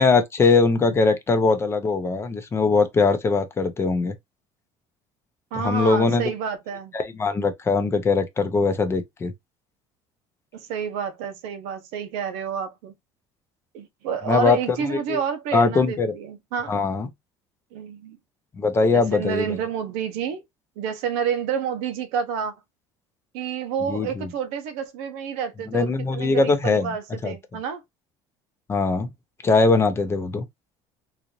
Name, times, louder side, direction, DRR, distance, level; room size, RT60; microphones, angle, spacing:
voice 1, 0.0-4.1 5.5-6.2 6.9-9.3 14.3-14.6 14.9-15.2 15.5-16.1 16.7-17.1 18.6-19.6 23.9-24.3 25.7-26.9 27.2-27.3 28.7-29.1 29.4-30.4, left 4 dB, 20° left, 0.7 m, -21 dB
voice 2, 5.5-7.0 10.5-12.9 13.7-16.9 17.7-18.2 18.9-20.4 20.8-22.5 23.3-27.8, right 7 dB, 90° right, 0.9 m, -29 dB
3.9 x 2.6 x 3.0 m
cardioid pair, 140°, 11 cm